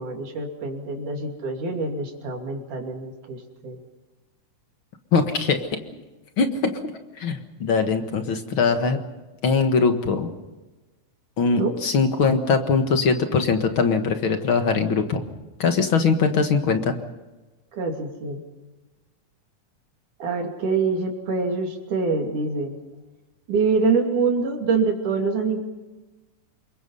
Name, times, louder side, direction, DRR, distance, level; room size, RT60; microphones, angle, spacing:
voice 1, 0.0-3.8 11.6-11.7 17.7-18.4 20.2-22.7 23.5-25.6, right 4 dB, 75° right, 2 dB, 4.2 m, -25 dB
voice 2, 5.1-5.7 6.4-6.7 7.2-9.0 9.4-10.3 11.4-15.2 15.6-17.0, left 5 dB, 50° left, 6 dB, 2.0 m, -21 dB
27.0 x 23.0 x 5.5 m, 1.1 s
omnidirectional pair, 3.6 m